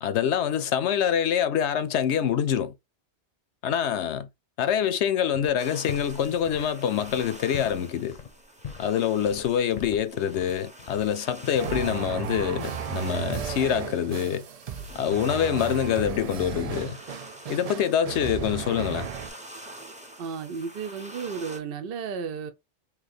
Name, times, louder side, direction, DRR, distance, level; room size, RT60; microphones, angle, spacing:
voice 1, 0.0-2.7 3.6-4.3 4.6-8.2 8.8-14.4 14.9-17.0 17.5-19.1, left 9 dB, 75° left, 0.9 m, -25 dB
foosteps sneakers, 5.3-5.5 5.9-11.1 11.4-12.2, left 7 dB, 45° left, 0.7 m, -42 dB
sound 1, 5.6-21.6, right 1 dB, 5° right, 0.7 m, -46 dB
sound 2, 11.6-19.3, right 8 dB, 85° right, 0.3 m, -34 dB
voice 2, 20.2-22.5, right 6 dB, 60° right, 0.8 m, -33 dB
3.2 x 2.8 x 3.9 m
omnidirectional pair, 1.2 m